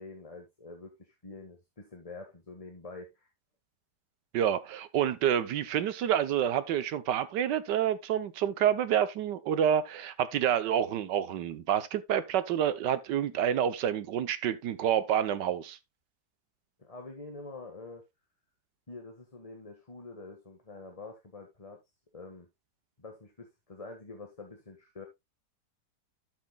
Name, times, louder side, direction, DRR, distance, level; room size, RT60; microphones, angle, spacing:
voice 1, 0.0-3.3 16.8-18.0 18.9-21.8 22.1-22.5 23.0-25.1, left 3 dB, 20° left, 1.5 m, -46 dB
voice 2, 4.3-15.8, right 9 dB, 90° right, 1.5 m, -28 dB
11.5 x 7.7 x 2.3 m
omnidirectional pair, 1.8 m